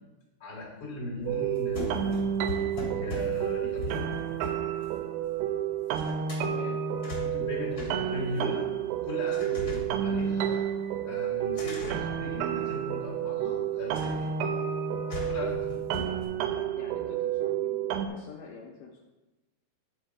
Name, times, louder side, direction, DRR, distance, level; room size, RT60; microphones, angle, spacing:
voice 1, 0.4-2.3 2.6-4.2 7.2-8.6 9.0-10.7 11.0-14.3 15.1-15.8, left 2 dB, 40° left, -6 dB, 3.0 m, -38 dB
sound 1, 1.2-5.6 5.9-6.5 6.9-8.8 9.3-10.8 11.5-13.0 13.9-14.4 15.1-16.3, left 2 dB, 25° left, 2.6 m, -41 dB
sound 2, 1.3-18.1, right 9 dB, 85° right, 2.6 m, -30 dB
voice 2, 6.4-6.9 7.7-8.7 9.7-9.9 16.7-19.0, left 5 dB, 80° left, -1 dB, 2.0 m, -46 dB
9.8 x 5.1 x 4.8 m, 1.1 s
omnidirectional pair, 4.7 m